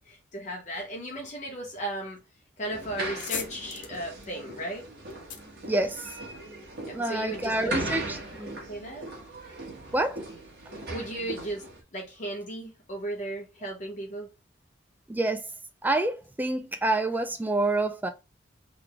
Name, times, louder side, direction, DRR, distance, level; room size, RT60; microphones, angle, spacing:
voice 1, 0.0-2.2 2.6-4.9 6.8-7.8 8.4-9.0 10.9-11.6 11.9-14.3, right 1 dB, 40° left, 0.9 m, -36 dB
sound 1, 2.6-11.8, right 2 dB, 55° right, 1.6 m, -38 dB
sound 2, 3.2-6.5, left 7 dB, 70° left, 1.0 m, -40 dB
voice 2, 5.7-6.1 6.9-8.6 9.9-10.2 15.1-15.4 15.8-18.1, right 2 dB, 10° right, 0.3 m, -27 dB
3.9 x 3.4 x 3.3 m
head